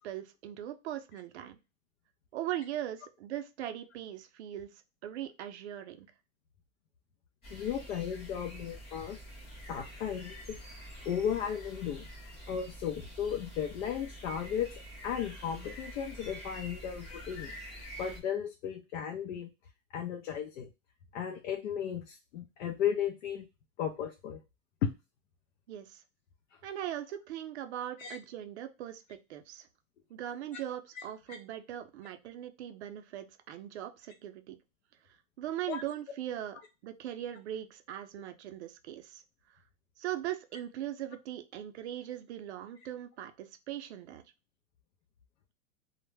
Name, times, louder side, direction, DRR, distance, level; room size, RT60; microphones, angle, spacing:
voice 1, 0.0-1.6 2.3-4.7 5.0-6.1 25.7-26.0 26.6-29.7 30.1-34.6 35.4-39.2 40.0-44.2, right 11 dB, 55° right, 8 dB, 0.5 m, -40 dB
sound 1, 7.4-18.2, equal, 15° left, 0.6 m, -47 dB
voice 2, 7.5-9.2 9.7-10.6 11.0-12.1 12.5-14.7 15.0-17.5 18.0-19.5 19.9-20.7 21.1-23.5 23.8-24.4 24.8-24.9 28.0-28.2 31.3-31.4 35.7-35.8, left 8 dB, 65° left, 4 dB, 0.5 m, -35 dB
2.2 x 2.0 x 3.2 m, 0.27 s
supercardioid pair, 160°, 40 cm